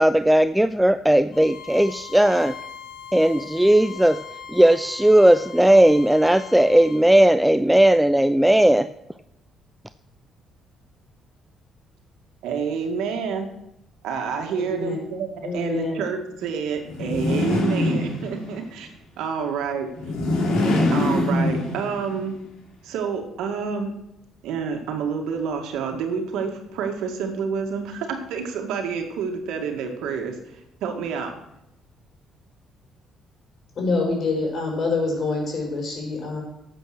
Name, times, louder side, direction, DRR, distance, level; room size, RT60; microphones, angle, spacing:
voice 1, 0.0-2.6 3.1-4.2 4.5-8.9, right 1 dB, 5° right, 12 dB, 0.4 m, -17 dB
Bowed string instrument, 1.3-7.1, left 7 dB, 65° left, 1.6 m, -40 dB
voice 2, 12.4-13.5 14.0-18.9 19.2-19.9 20.9-22.4 22.8-23.9 24.4-31.3, right 6 dB, 85° right, 4 dB, 2.1 m, -28 dB
voice 3, 14.5-15.0 15.4-16.0 33.8-36.4, left 3 dB, 50° left, 1 dB, 5.7 m, -26 dB
sound 1, 16.9-18.6 20.0-22.1, left 1 dB, 90° left, 3.4 m, -23 dB
12.5 x 8.2 x 6.2 m, 0.84 s
cardioid pair, 105°, 0 cm